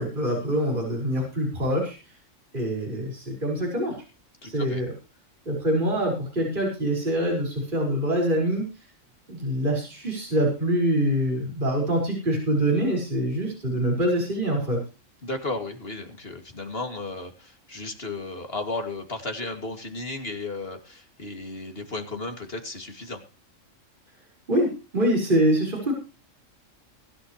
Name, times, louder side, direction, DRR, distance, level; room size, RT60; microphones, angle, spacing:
voice 1, 0.0-2.0 2.5-3.9 4.4-4.9 5.5-8.6 9.3-14.8 24.5-25.9, right 1 dB, 40° right, -2 dB, 5.7 m, -25 dB
voice 2, 4.4-4.8 15.2-23.2, left 2 dB, 45° left, 5 dB, 2.9 m, -34 dB
22.5 x 10.5 x 3.2 m, 0.32 s
omnidirectional pair, 1.4 m